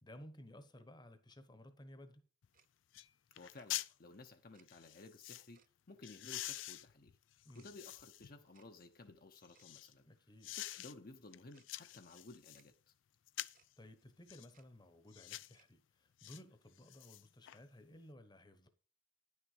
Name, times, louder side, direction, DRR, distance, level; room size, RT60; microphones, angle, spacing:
voice 1, 0.0-2.2 7.4-7.7 10.1-10.5 13.8-18.7, left 1 dB, 25° left, 1.0 m, -57 dB
sound 1, 2.4-2.5 2.9-3.1 3.3-3.9 4.7-5.5 6.0-8.3 8.8-9.9 10.4-10.9 11.3-12.6 13.3-13.7 14.3-14.5 15.1-15.5 16.2-16.4 16.8-17.6 17.9-18.0, left 15 dB, 90° left, 0.4 m, -46 dB
Tick-tock, 2.5-2.7 3.5-3.7 4.5-4.7 5.5-5.7 6.5-6.7 7.5-7.7 8.5-8.7 9.5-9.7 10.5-10.7 11.5-11.7 12.5-12.7 13.5-13.7 14.5-14.7 15.5-15.7, right 8 dB, 45° right, 0.6 m, -70 dB
voice 2, 3.4-5.6 5.9-7.1 7.5-10.1 10.5-12.9, left 2 dB, 50° left, 0.9 m, -56 dB
10.5 x 6.6 x 4.9 m
head